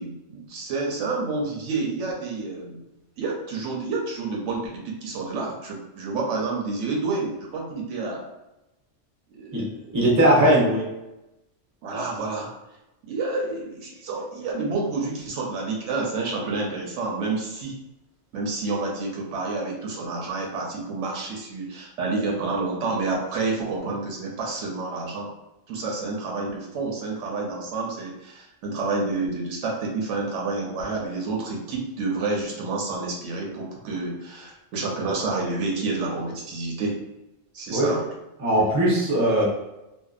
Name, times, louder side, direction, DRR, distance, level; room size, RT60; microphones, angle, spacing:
voice 1, 0.0-2.8 3.2-8.3 9.3-9.9 11.8-12.5 13.1-17.8 18.3-25.3 25.7-37.0 37.5-38.1, right 3 dB, 75° right, -1 dB, 0.9 m, -29 dB
voice 2, 9.9-10.8 37.7-37.9 38.4-39.4, right 1 dB, 25° right, -5 dB, 0.4 m, -19 dB
2.6 x 2.2 x 2.3 m, 0.95 s
omnidirectional pair, 1.3 m